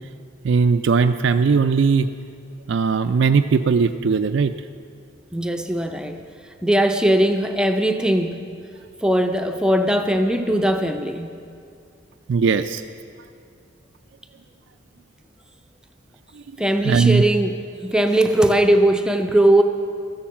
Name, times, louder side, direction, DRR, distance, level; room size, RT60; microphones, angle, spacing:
voice 1, 0.4-2.1 2.7-4.5 12.3-12.8 16.8-17.2, right 5 dB, 70° right, 8 dB, 0.4 m, -18 dB
voice 2, 5.3-6.2 6.6-8.4 9.0-11.3 16.6-19.6, right 1 dB, 5° right, 5 dB, 0.6 m, -19 dB
14.0 x 11.5 x 7.3 m, 2.3 s
head